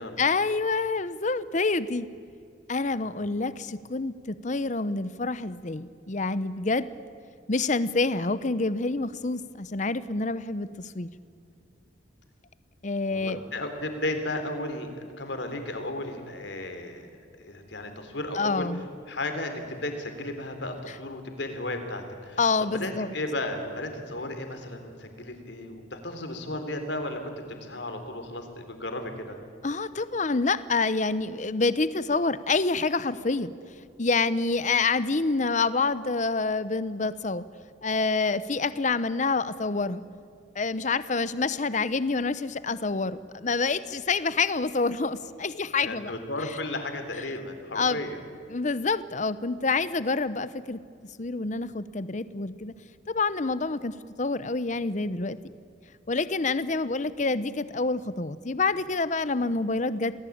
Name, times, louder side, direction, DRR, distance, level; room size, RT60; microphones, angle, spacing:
voice 1, 0.2-2.1 2.7-6.9 7.5-11.1 12.8-13.4 18.3-18.8 22.4-23.1 29.6-33.5 34.0-37.4 37.8-40.0 40.5-46.1 47.7-48.0 48.5-50.8 51.2-52.7 53.1-55.4 56.1-60.1, left 3 dB, 40° left, 15 dB, 0.8 m, -27 dB
voice 2, 2.9-3.3 13.1-17.1 17.4-18.7 19.1-22.4 22.8-27.2 27.5-29.4 45.8-48.2, left 1 dB, 70° left, 6 dB, 3.5 m, -34 dB
27.5 x 19.5 x 8.7 m, 2.4 s
head